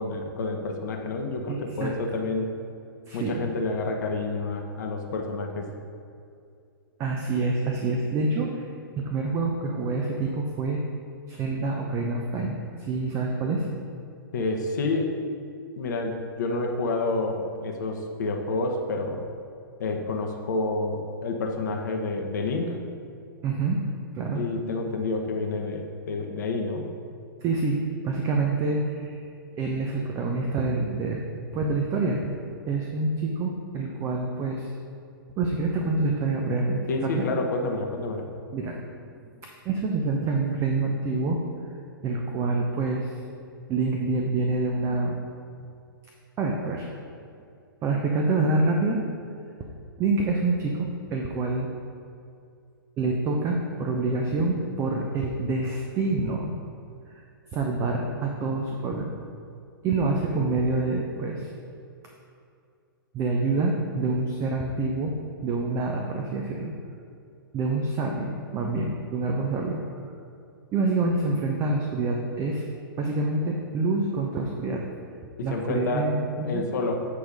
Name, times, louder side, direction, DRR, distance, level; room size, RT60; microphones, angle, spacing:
voice 1, 0.0-2.6 3.1-5.7 14.3-15.2 15.8-19.3 19.8-22.8 24.3-26.9 36.9-38.3 60.3-60.4 75.4-76.1 76.4-77.0, left 3 dB, 50° left, 2 dB, 0.9 m, -29 dB
voice 2, 1.5-1.9 3.1-3.4 7.0-8.7 9.0-10.8 11.3-13.6 23.4-23.8 24.1-24.4 27.4-29.2 29.6-31.3 31.5-32.2 32.7-34.7 35.4-37.4 38.5-38.8 39.6-41.4 42.0-43.1 43.7-45.1 46.4-46.9 47.8-49.0 50.0-51.7 53.0-56.5 57.1-57.2 57.5-59.1 59.8-61.5 63.1-65.1 65.4-66.7 67.5-69.8 70.7-72.7 73.0-74.8 75.4-76.7, right 3 dB, 25° right, 1 dB, 0.7 m, -27 dB
8.5 x 4.6 x 5.3 m, 2.4 s
figure-of-eight pair, 110°, 12 cm